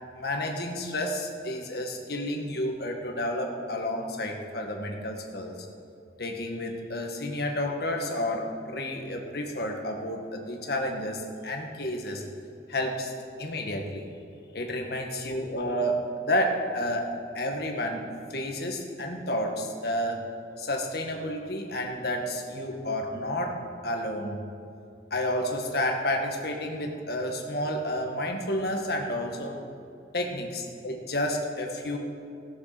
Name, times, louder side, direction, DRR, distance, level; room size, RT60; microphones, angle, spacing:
voice 1, 0.1-5.5 6.2-12.2 12.7-13.1 13.4-14.0 14.5-20.2 20.6-24.4 25.1-29.6 30.1-32.0, left 1 dB, 55° left, 2 dB, 1.6 m, -30 dB
17.0 x 6.6 x 6.7 m, 2.6 s
head